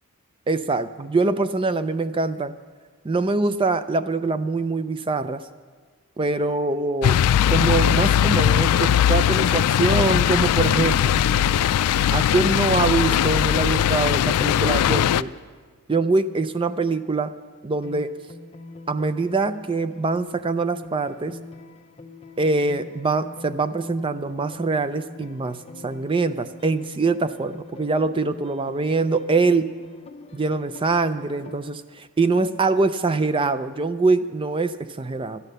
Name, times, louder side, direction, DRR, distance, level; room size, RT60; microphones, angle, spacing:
voice 1, 0.5-2.5 3.0-5.4 6.2-7.2 7.5-11.2 12.1-15.3 15.9-17.3 17.6-18.1 18.9-21.4 22.4-29.7 30.3-35.4, right 3 dB, 25° right, 12 dB, 0.4 m, -23 dB
sound 1, 7.0-15.2, left 10 dB, 85° left, 0.3 m, -19 dB
sound 2, 17.8-31.6, left 3 dB, 25° left, 0.7 m, -43 dB
12.5 x 11.0 x 6.6 m, 1.5 s
head